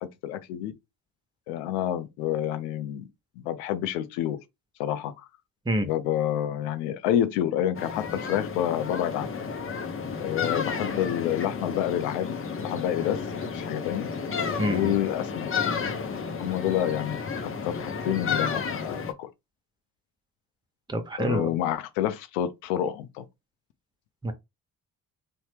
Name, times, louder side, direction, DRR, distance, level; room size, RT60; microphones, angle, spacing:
voice 1, 0.0-0.7 1.5-3.1 3.4-4.4 4.8-5.3 5.8-9.3 10.2-12.3 12.6-13.2 13.5-14.1 14.7-15.5 16.4-19.3 21.2-23.2, left 11 dB, 80° left, 0.6 m, -28 dB
sound 1, 7.7-19.1, left 5 dB, 30° left, 0.7 m, -32 dB
voice 2, 14.6-15.0 20.9-21.5 24.2-24.3, right 1 dB, 10° right, 0.8 m, -27 dB
2.9 x 2.1 x 3.2 m
hypercardioid pair, 45°, 42 cm